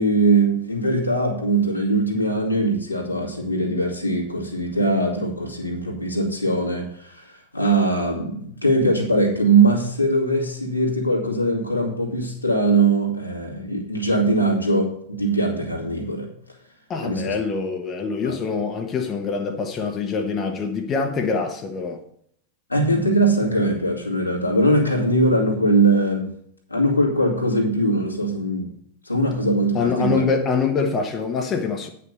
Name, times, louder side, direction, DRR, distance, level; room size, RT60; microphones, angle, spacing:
voice 1, 0.0-16.3 17.0-17.4 18.2-18.4 22.7-26.3 26.7-28.7 29.0-30.2, right 2 dB, 85° left, 2.4 m, -21 dB
voice 2, 16.9-22.0 29.7-31.9, left 5 dB, 30° left, 1.1 m, -24 dB
9.3 x 5.9 x 6.7 m
figure-of-eight pair, 90°, 0 cm